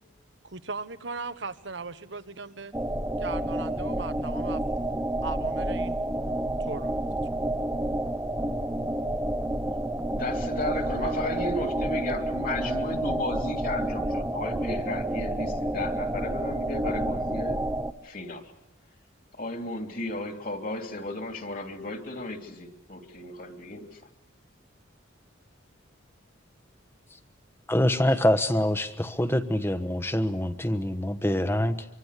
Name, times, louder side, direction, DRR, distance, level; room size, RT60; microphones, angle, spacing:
voice 1, 0.4-2.7 3.2-4.6 5.2-6.0 6.6-7.0, right 3 dB, 65° right, 12 dB, 1.3 m, -38 dB
sound 1, 2.7-17.9, right 1 dB, 10° right, 0.9 m, -29 dB
voice 2, 10.1-17.6 18.0-18.5 19.4-24.0, left 1 dB, 45° left, 5 dB, 3.0 m, -34 dB
voice 3, 27.7-31.9, left 1 dB, 10° left, 10 dB, 1.2 m, -25 dB
25.5 x 24.5 x 8.3 m, 0.87 s
head